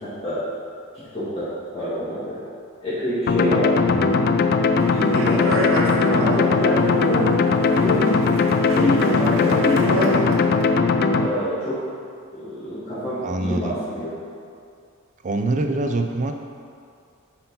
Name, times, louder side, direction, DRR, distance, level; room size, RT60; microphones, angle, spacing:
voice 1, 0.0-0.4 1.1-1.5 1.7-2.4 2.8-3.7 4.9-5.4 6.1-7.3 7.7-8.1 8.6-10.2 11.1-11.8 12.3-14.1, equal, 25° left, -14 dB, 2.0 m, -26 dB
sound 1, 3.3-11.3, left 4 dB, 45° left, 0.3 m, -19 dB
Speech, 4.8-10.6, right 1 dB, 60° right, 0.9 m, -29 dB
voice 2, 13.2-13.8 15.2-16.3, right 2 dB, 35° right, 5 dB, 0.4 m, -25 dB
7.7 x 4.5 x 5.6 m, 2.3 s
head